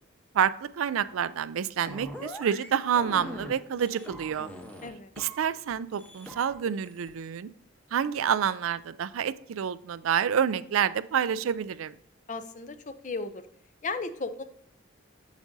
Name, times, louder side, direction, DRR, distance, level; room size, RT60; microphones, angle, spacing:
voice 1, 0.3-4.5 5.2-7.5 7.9-12.0, right 8 dB, 85° right, 16 dB, 0.4 m, -28 dB
sound 1, 1.8-2.7 3.0-3.5 3.8-4.9 5.2-5.7 6.0-7.1, equal, 5° left, 0.8 m, -42 dB
voice 2, 12.3-13.4 13.8-14.4, left 3 dB, 35° left, 11 dB, 0.5 m, -35 dB
7.3 x 7.2 x 2.6 m, 0.69 s
head